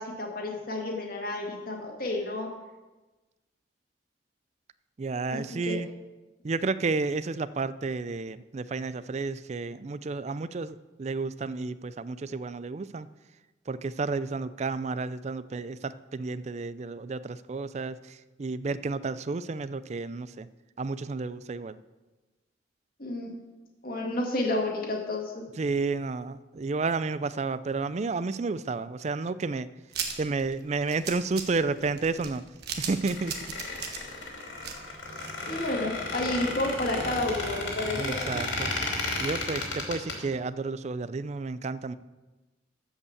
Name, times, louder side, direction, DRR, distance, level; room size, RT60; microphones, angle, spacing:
voice 1, 0.0-2.5 5.3-5.8 23.0-23.3 23.8-25.4 35.5-38.2, left 2 dB, 50° left, 0 dB, 1.8 m, -31 dB
voice 2, 5.0-5.9 6.4-13.1 13.7-20.5 20.8-21.8 25.6-29.7 30.2-32.4 32.8-33.5 38.0-38.7 39.2-42.0, right 3 dB, 35° right, 15 dB, 0.4 m, -31 dB
sound 1, 29.9-36.0 36.4-36.5 36.7-36.8, right 6 dB, 55° right, 1.4 m, -37 dB
Squeak, 32.9-40.1, left 2 dB, 80° left, 2.7 m, -33 dB
13.5 x 5.5 x 7.1 m, 1.2 s
head